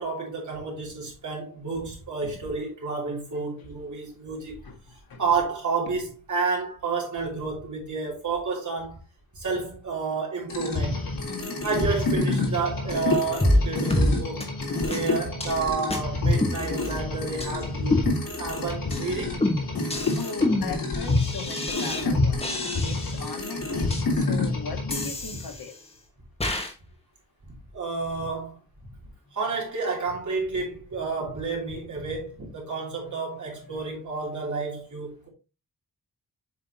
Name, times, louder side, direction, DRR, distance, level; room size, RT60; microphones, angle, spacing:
voice 1, 0.0-4.6 5.2-9.0 9.3-11.0 11.6-14.5 14.9-18.1 18.4-19.3 25.3-25.4 27.7-28.6 29.3-35.3, right 4 dB, 55° right, 3.1 m, -30 dB
sound 1, 10.5-25.0, left 3 dB, 65° left, 3.5 m, -28 dB
voice 2, 11.3-11.6 20.2-25.7 33.7-33.9, left 5 dB, 85° left, 1.4 m, -39 dB
sound 2, 13.4-13.6 13.9-14.1 14.4-14.5 14.9-15.0 15.4-15.6 15.9-16.0 16.4-17.0 17.4-17.5 17.9-18.5 18.9-19.1 19.4-22.0 22.4-23.3 23.9-24.0 24.9-25.9 26.4-26.7, left 1 dB, 15° left, 1.4 m, -27 dB
7.4 x 5.7 x 2.8 m
wide cardioid pair, 170°, 35 cm